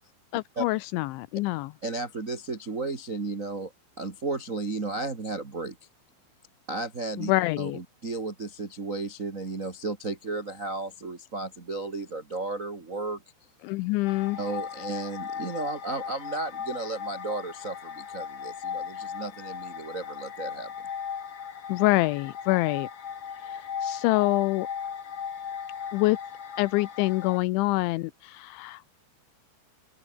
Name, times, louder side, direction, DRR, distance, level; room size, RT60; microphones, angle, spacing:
voice 1, 0.3-1.7 7.2-7.8 13.6-14.4 21.7-22.9 23.4-24.7 25.9-26.2 26.6-28.8, left 20 dB, 85° left, 3.1 m, -26 dB
voice 2, 1.8-3.7 4.0-5.7 6.7-7.3 7.6-13.2 14.4-20.7, right 3 dB, 30° right, 1.6 m, -34 dB
sound 1, 14.1-27.4, left 7 dB, 45° left, 2.2 m, -37 dB
open air
omnidirectional pair, 5.4 m